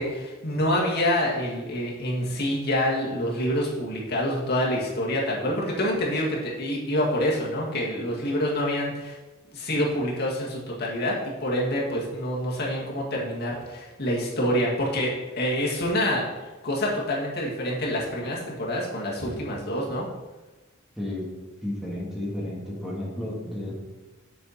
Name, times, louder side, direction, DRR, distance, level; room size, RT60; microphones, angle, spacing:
voice 1, 0.0-9.2 9.5-11.1 11.4-15.1 15.4-16.2 16.6-20.0, equal, 50° left, -3 dB, 1.9 m, -26 dB
voice 2, 21.0-21.3 21.6-23.7, left 1 dB, ahead, -5 dB, 1.7 m, -32 dB
8.4 x 6.2 x 4.2 m, 1.1 s
head